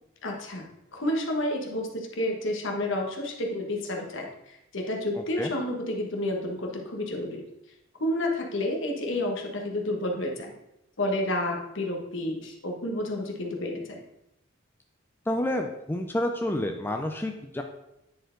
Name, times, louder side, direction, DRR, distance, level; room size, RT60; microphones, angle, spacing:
voice 1, 0.2-0.6 0.9-7.4 8.0-10.5 11.0-14.0, left 1 dB, 65° left, 1 dB, 1.2 m, -30 dB
voice 2, 15.3-17.6, left 1 dB, 10° left, 4 dB, 0.4 m, -29 dB
9.3 x 4.4 x 3.8 m, 0.86 s
head